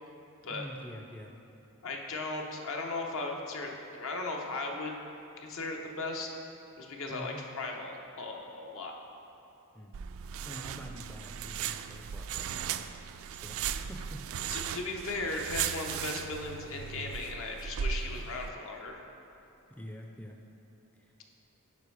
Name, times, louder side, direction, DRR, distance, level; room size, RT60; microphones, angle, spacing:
voice 1, 0.5-1.3 7.1-7.4 9.7-9.9 10.4-12.9 13.4-14.2 16.9-17.0 19.7-20.4 21.0-21.1, equal, 5° left, 2 dB, 0.4 m, -46 dB
voice 2, 1.8-4.9 5.4-6.3 6.8-8.9 14.5-19.0, left 3 dB, 65° left, 1 dB, 0.9 m, -37 dB
sound 1, 9.9-18.5, right 8 dB, 65° right, 0.3 m, -37 dB
9.7 x 5.3 x 4.8 m, 2.9 s
head